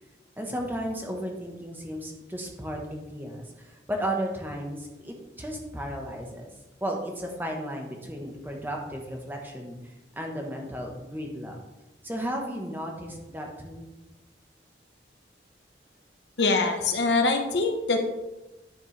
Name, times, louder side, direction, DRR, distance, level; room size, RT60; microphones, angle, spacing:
voice 1, 0.4-6.5 6.8-9.8 10.1-11.6 12.0-13.9, equal, 10° right, 1 dB, 1.2 m, -34 dB
voice 2, 16.4-18.0, left 3 dB, 80° left, 4 dB, 1.1 m, -23 dB
10.5 x 6.4 x 3.3 m, 1.1 s
head